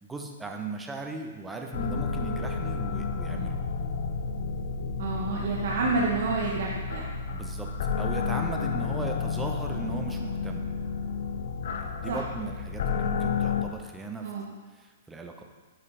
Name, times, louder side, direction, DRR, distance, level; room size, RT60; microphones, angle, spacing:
voice 1, 0.0-3.6 7.3-7.7 8.0-10.7 11.7-14.3 14.7-15.4, right 3 dB, 10° right, 3 dB, 0.7 m, -37 dB
sound 1, 1.7-13.6, left 5 dB, 65° left, 0.7 m, -31 dB
voice 2, 5.0-7.1 12.1-12.2 14.2-14.5, right 3 dB, 65° right, -3 dB, 1.1 m, -29 dB
9.6 x 4.9 x 3.3 m, 1.4 s
hypercardioid pair, 145°, 0 cm